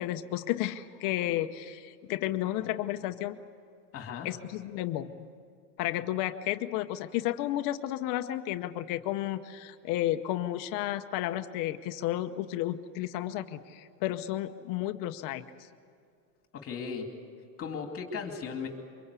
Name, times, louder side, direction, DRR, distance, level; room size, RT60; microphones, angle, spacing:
voice 1, 0.0-3.4 4.2-5.2 5.8-15.4, left 14 dB, 45° left, 8 dB, 0.9 m, -32 dB
voice 2, 3.9-4.3 16.5-17.1 17.6-18.7, left 6 dB, 30° left, 4 dB, 2.6 m, -36 dB
24.0 x 22.5 x 8.3 m, 2.3 s
supercardioid pair, 145°, 47 cm